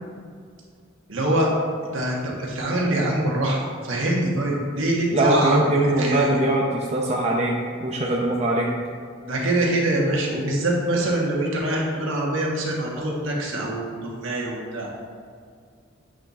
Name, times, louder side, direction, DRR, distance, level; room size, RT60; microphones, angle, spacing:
voice 1, 1.1-1.5 1.9-6.4 9.3-14.9, right 1 dB, 70° right, -2 dB, 1.3 m, -24 dB
voice 2, 5.1-7.5 7.8-8.7, right 1 dB, 30° right, -3 dB, 0.6 m, -21 dB
7.8 x 3.6 x 4.1 m, 2.1 s
head